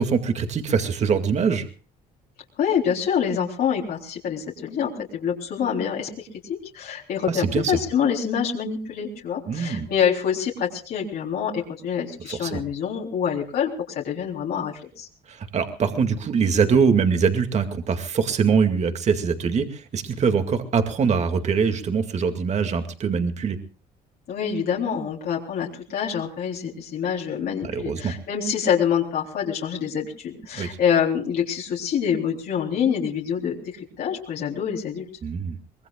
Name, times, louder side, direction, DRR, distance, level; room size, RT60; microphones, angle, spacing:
voice 1, 0.0-1.7 7.3-7.7 9.5-9.9 12.3-12.6 15.3-23.6 27.6-28.1 30.5-30.8 35.2-35.6, right 6 dB, 40° right, 7 dB, 2.2 m, -23 dB
voice 2, 2.6-15.1 24.3-35.1, left 7 dB, 65° left, -1 dB, 3.7 m, -26 dB
24.5 x 20.0 x 2.4 m, 0.38 s
cardioid pair, 110°, 17 cm